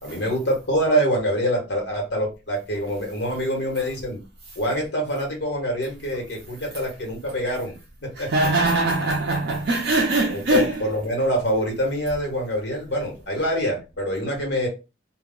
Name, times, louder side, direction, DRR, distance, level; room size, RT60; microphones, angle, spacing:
voice 1, 0.0-4.2 4.6-8.3 10.3-14.7, equal, 60° left, 1.1 m, -25 dB
voice 2, 8.2-10.8, right 2 dB, 55° right, 0.4 m, -22 dB
2.3 x 2.1 x 3.6 m
head